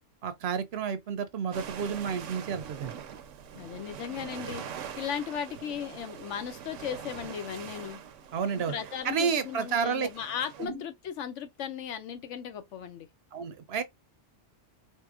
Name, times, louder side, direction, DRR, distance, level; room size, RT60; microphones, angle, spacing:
voice 1, 0.2-2.9 8.3-8.7 9.0-10.1 10.6-10.8 13.3-13.8, right 6 dB, 65° right, 0.8 m, -30 dB
sound 1, 1.5-10.7, right 8 dB, 90° right, 1.0 m, -43 dB
voice 2, 3.5-4.6 5.0-8.0 8.5-13.1, left 8 dB, 80° left, 0.9 m, -36 dB
3.7 x 2.7 x 2.4 m
omnidirectional pair, 1.2 m